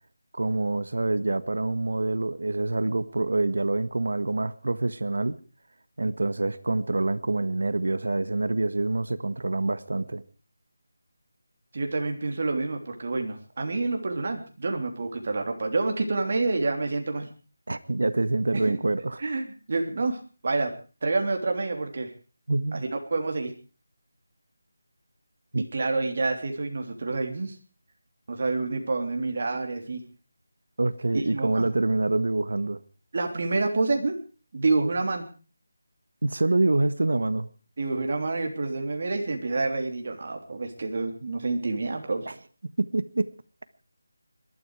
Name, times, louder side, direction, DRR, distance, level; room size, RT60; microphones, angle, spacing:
voice 1, 0.3-5.3 6.0-10.2 17.7-19.2 22.5-22.8 25.5-25.6 30.8-32.8 36.2-37.5 42.3-42.4 42.8-43.3, right 2 dB, 70° right, 13 dB, 1.6 m, -26 dB
voice 2, 11.7-17.3 18.5-18.8 19.2-20.7 21.0-22.1 22.7-22.8 23.1-23.5 25.6-27.5 28.3-30.0 31.1-31.7 33.1-34.2 34.5-35.2 37.8-42.3, right 3 dB, 40° right, 3 dB, 3.4 m, -28 dB
21.5 x 13.0 x 4.9 m, 0.38 s
figure-of-eight pair, 175°, 0 cm